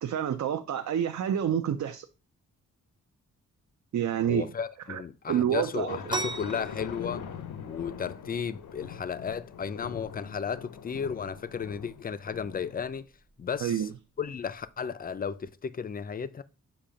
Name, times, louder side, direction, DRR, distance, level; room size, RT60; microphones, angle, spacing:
voice 1, 0.0-2.1 3.9-4.5 4.9-5.0 5.3-6.2 13.6-13.9, right 9 dB, 60° right, 0.5 m, -28 dB
voice 2, 4.2-7.3 7.6-13.1 13.4-13.8 14.2-16.4, left 6 dB, 30° left, 0.4 m, -34 dB
sound 1, 5.9-13.0, left 7 dB, 75° left, 0.7 m, -42 dB
sound 2, 6.1-15.5, right 3 dB, 15° right, 0.6 m, -43 dB
7.0 x 2.8 x 5.0 m
wide cardioid pair, 110°, 32 cm